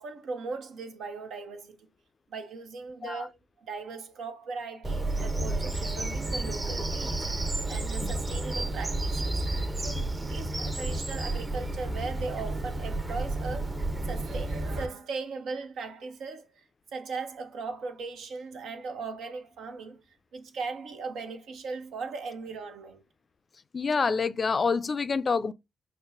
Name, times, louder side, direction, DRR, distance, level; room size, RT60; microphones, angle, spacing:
voice 1, 0.0-1.9 2.3-7.2 7.7-9.4 9.8-13.8 14.1-16.5 16.9-20.0 20.3-23.0, right 4 dB, 80° right, 0.7 m, -38 dB
Bird vocalization bird call bird song, 4.8-14.9, right 2 dB, 25° right, 0.7 m, -31 dB
voice 2, 23.7-25.5, left 5 dB, 50° left, 0.4 m, -27 dB
5.3 x 2.1 x 2.5 m
supercardioid pair, 45°, 0 cm